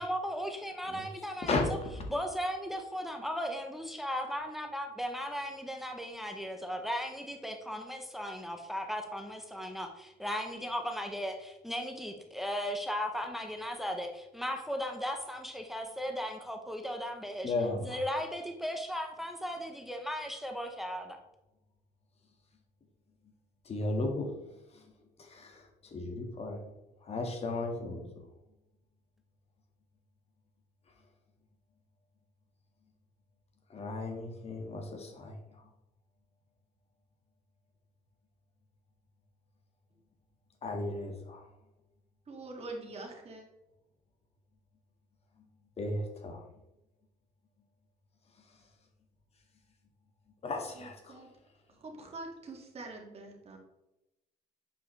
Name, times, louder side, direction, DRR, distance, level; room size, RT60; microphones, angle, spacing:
voice 1, 0.0-1.6 2.1-17.5 17.8-21.2, equal, ahead, 4 dB, 0.9 m, -36 dB
voice 2, 1.4-1.9 17.4-18.0 23.6-24.9 25.2-26.6 27.0-28.3 33.7-35.7 40.6-41.5 45.8-46.4 48.4-48.6 50.4-51.2, left 2 dB, 35° left, 3 dB, 1.7 m, -35 dB
voice 3, 42.3-43.4 50.8-51.3 51.7-53.6, right 2 dB, 35° right, 1 dB, 2.0 m, -44 dB
7.4 x 5.4 x 3.2 m, 0.93 s
cardioid pair, 110°, 17 cm